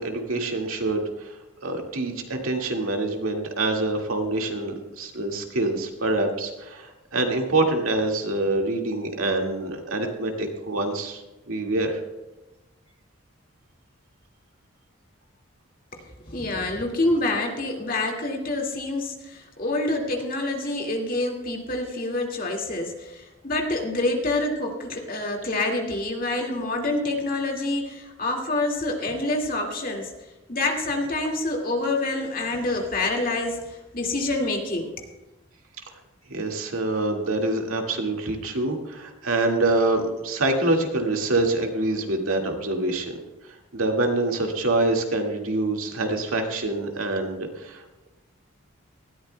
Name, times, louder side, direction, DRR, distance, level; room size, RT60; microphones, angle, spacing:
voice 1, 0.0-11.2 11.5-12.0 36.3-43.2 43.7-47.8, right 2 dB, 80° right, 2 dB, 1.9 m, -26 dB
voice 2, 16.2-30.1 30.5-34.9, left 2 dB, 40° left, 1 dB, 2.0 m, -27 dB
19.0 x 13.5 x 2.2 m, 1.1 s
head